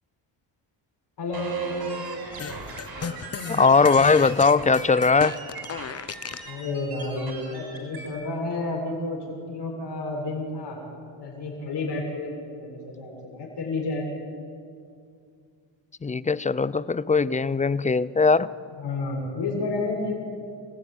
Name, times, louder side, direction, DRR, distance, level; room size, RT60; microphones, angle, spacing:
voice 1, 1.2-1.8 6.5-10.8 11.2-14.1 18.8-20.1, left 2 dB, 60° left, -1 dB, 7.3 m, -30 dB
sound 1, 1.3-8.1, right 3 dB, 55° right, 7.9 m, -40 dB
sound 2, 2.4-6.5, left 6 dB, 35° left, 1.1 m, -35 dB
voice 2, 3.5-5.4 16.0-18.5, left 4 dB, 15° left, 19 dB, 0.5 m, -20 dB
28.5 x 16.0 x 9.9 m, 2.3 s
cardioid pair, 105°, 44 cm